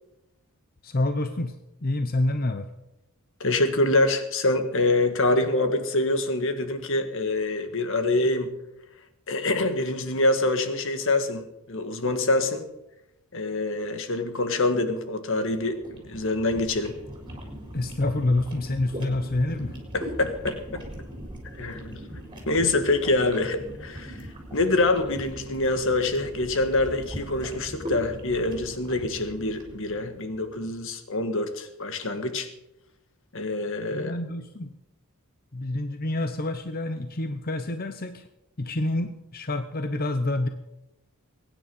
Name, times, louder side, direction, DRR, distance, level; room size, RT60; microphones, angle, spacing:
voice 1, 0.8-1.6 1.8-2.7 17.7-19.8 33.9-34.7 35.5-38.3 38.6-40.5, left 2 dB, 40° left, 8 dB, 0.8 m, -27 dB
voice 2, 3.4-8.5 9.3-12.6 13.3-17.0 19.9-20.8 21.6-22.0 22.5-32.5 33.3-34.1, left 2 dB, 60° left, 8 dB, 1.8 m, -25 dB
sound 1, 15.5-30.7, equal, 20° right, 4.5 m, -40 dB
22.5 x 10.0 x 5.5 m, 0.91 s
head